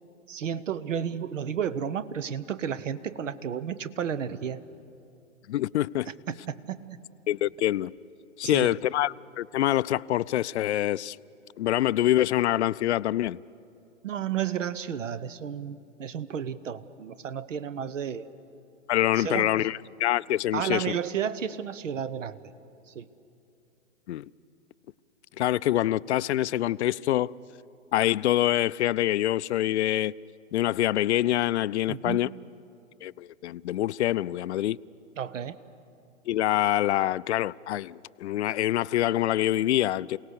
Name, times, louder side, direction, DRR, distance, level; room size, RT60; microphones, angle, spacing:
voice 1, 0.3-4.6 6.3-6.9 8.4-8.8 14.0-18.3 19.2-19.7 20.5-22.5 22.9-23.1 31.9-32.3 35.2-35.6, right 8 dB, 75° right, 0.9 m, -32 dB
voice 2, 5.5-6.1 7.3-7.9 8.4-11.2 11.6-13.4 18.9-21.0 24.1-24.3 25.4-27.3 27.9-30.1 30.5-32.3 33.0-34.8 36.3-40.2, left 13 dB, 65° left, 0.5 m, -25 dB
28.5 x 18.0 x 6.5 m
hypercardioid pair, 125°, 38 cm